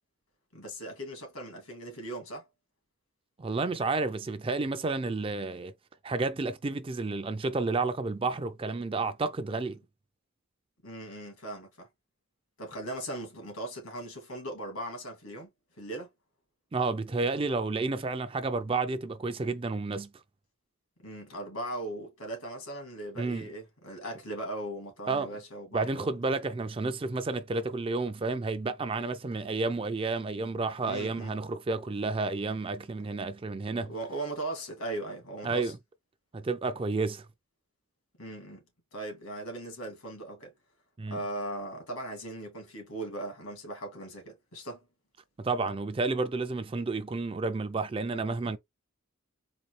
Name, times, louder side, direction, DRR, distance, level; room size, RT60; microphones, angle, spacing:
voice 1, 0.5-2.5 10.8-11.9 12.6-15.5 15.8-16.1 21.0-26.1 30.8-31.3 33.9-35.7 38.2-38.6 38.9-40.5 41.1-44.8, right 1 dB, 85° left, 2.0 m, -39 dB
voice 2, 3.4-5.7 6.0-9.8 16.7-20.1 23.2-23.5 25.1-25.3 25.7-33.9 35.4-35.8 36.3-37.3 41.0-41.2 45.4-48.6, right 3 dB, 25° right, 0.3 m, -31 dB
4.1 x 2.6 x 3.1 m
head